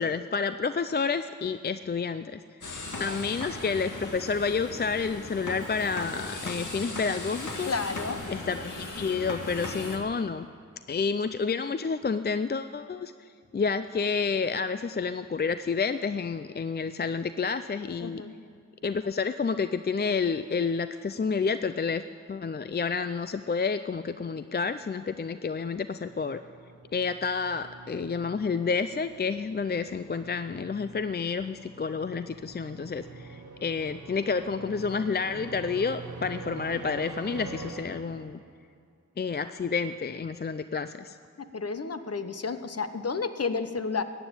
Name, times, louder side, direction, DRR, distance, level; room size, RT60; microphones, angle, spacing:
voice 1, 0.0-2.4 3.0-7.7 8.3-10.5 10.9-13.1 13.5-18.2 18.8-22.0 22.3-26.4 26.9-38.4 39.2-41.2, left 5 dB, 35° left, 12 dB, 0.4 m, -29 dB
sound 1, 2.6-10.0, left 2 dB, 80° left, 1.9 m, -37 dB
voice 2, 7.7-8.2 18.0-18.4 41.4-44.0, left 4 dB, 55° left, 10 dB, 0.9 m, -31 dB
sound 2, 25.9-38.6, right 3 dB, 80° right, 1.7 m, -45 dB
15.0 x 9.3 x 8.8 m, 2.2 s
wide cardioid pair, 60°, 30 cm